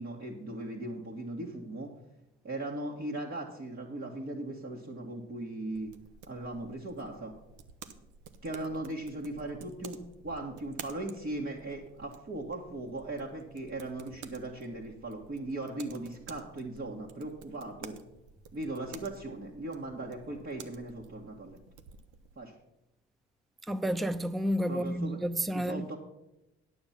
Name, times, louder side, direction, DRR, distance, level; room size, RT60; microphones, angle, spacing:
voice 1, 0.0-1.9 2.4-5.9 6.3-7.4 8.4-18.0 18.5-21.6 22.3-22.5 24.7-25.2 25.5-26.0, right 2 dB, 40° right, 1.7 m, -38 dB
sound 1, 5.7-22.4, right 6 dB, 75° right, 0.8 m, -52 dB
voice 2, 23.7-26.0, equal, ahead, 0.4 m, -31 dB
9.5 x 7.0 x 5.9 m
hypercardioid pair, 50°, 31 cm